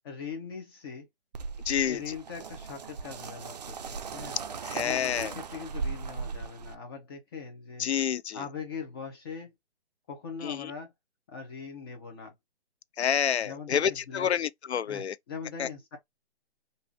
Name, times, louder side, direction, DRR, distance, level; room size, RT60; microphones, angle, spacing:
voice 1, 0.0-1.1 1.8-4.4 4.8-7.9 8.3-9.5 10.1-10.9 11.3-12.4 13.4-14.4 14.8-16.0, left 5 dB, 20° left, 0.8 m, -41 dB
sound 1, 1.3-6.7, right 5 dB, 40° right, 0.4 m, -38 dB
voice 2, 1.7-2.0 4.7-5.3 7.8-8.4 10.4-10.7 13.0-15.1 15.6-15.7, left 8 dB, 80° left, 0.6 m, -28 dB
3.5 x 2.6 x 2.5 m
hypercardioid pair, 155°, 33 cm